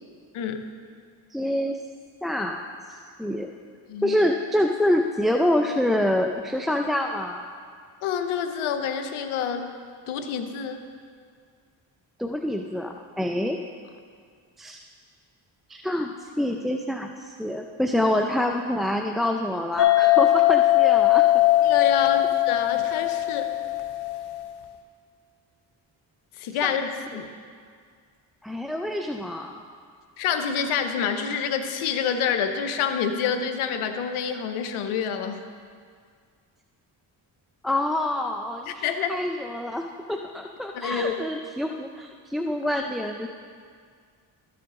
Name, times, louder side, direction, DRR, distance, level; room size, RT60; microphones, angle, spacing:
voice 1, 0.3-0.7 3.9-4.2 8.0-9.7 10.1-10.8 21.6-23.6 26.4-27.3 30.2-35.4 38.7-39.2 40.7-41.2, left 7 dB, 85° left, 8 dB, 0.8 m, -27 dB
voice 2, 1.3-1.8 2.2-3.5 4.0-7.4 12.2-13.6 14.6-14.8 15.7-21.2 26.6-26.8 27.1-27.2 28.4-29.5 37.6-43.3, left 1 dB, ahead, 3 dB, 0.4 m, -26 dB
sound 1, 19.8-24.5, left 15 dB, 55° left, 0.8 m, -20 dB
13.0 x 6.0 x 3.7 m, 2.1 s
supercardioid pair, 50°, 49 cm